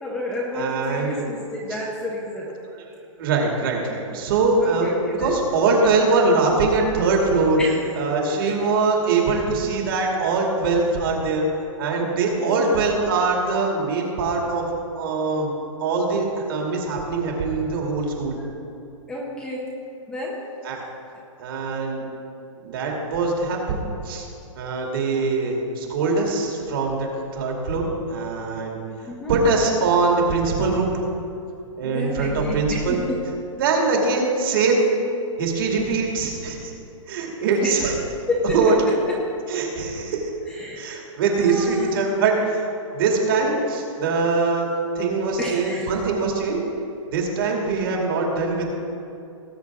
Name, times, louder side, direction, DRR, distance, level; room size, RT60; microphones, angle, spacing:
voice 1, 0.0-2.5 4.6-5.4 7.6-7.9 8.3-8.6 12.4-12.7 19.1-19.7 20.1-20.4 29.0-29.3 31.8-33.2 37.6-37.8 38.3-38.7 40.5-40.8 41.2-41.9 45.4-45.9, left 1 dB, 5° left, -4 dB, 0.8 m, -30 dB
voice 2, 0.5-1.3 3.2-4.9 5.2-7.6 8.0-11.5 11.8-14.6 15.0-15.5 15.8-18.4 20.6-20.8 21.4-22.0 22.6-24.3 24.6-27.1 27.3-28.8 29.3-31.0 31.8-33.0 33.6-34.9 35.4-36.7 37.1-37.9 38.5-38.7 39.5-40.3 40.8-42.6 42.9-44.7 45.0-46.6 47.1-48.7, right 3 dB, 40° right, 0 dB, 2.4 m, -22 dB
19.5 x 8.7 x 3.6 m, 2.7 s
hypercardioid pair, 170°, 17 cm